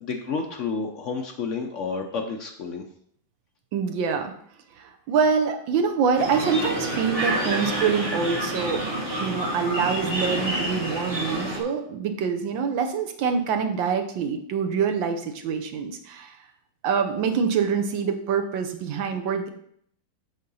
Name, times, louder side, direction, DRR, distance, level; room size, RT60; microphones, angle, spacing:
voice 1, 0.0-2.8, left 4 dB, 70° left, 3 dB, 0.7 m, -30 dB
voice 2, 3.7-4.3 4.8-8.8 9.2-16.4 16.8-19.5, right 6 dB, 75° right, 6 dB, 1.5 m, -25 dB
sound 1, 6.1-11.6, right 1 dB, 30° right, 1.7 m, -28 dB
7.6 x 3.6 x 5.4 m, 0.65 s
omnidirectional pair, 2.1 m